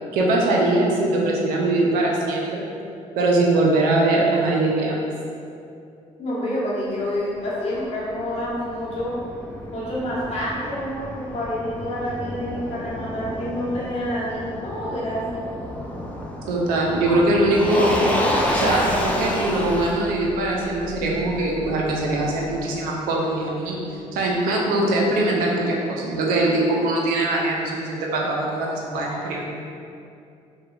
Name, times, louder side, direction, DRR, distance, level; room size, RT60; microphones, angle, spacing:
voice 1, 0.1-2.7 3.1-5.1 16.5-18.0 18.5-23.8 24.1-29.4, right 2 dB, 85° right, -2 dB, 0.4 m, -22 dB
voice 2, 6.2-9.2 9.7-15.5, left 1 dB, 50° left, -8 dB, 1.0 m, -28 dB
Motor vehicle (road), 7.5-22.5, left 1 dB, 10° left, 0.4 m, -30 dB
2.8 x 2.1 x 2.3 m, 2.6 s
supercardioid pair, 65°, 14 cm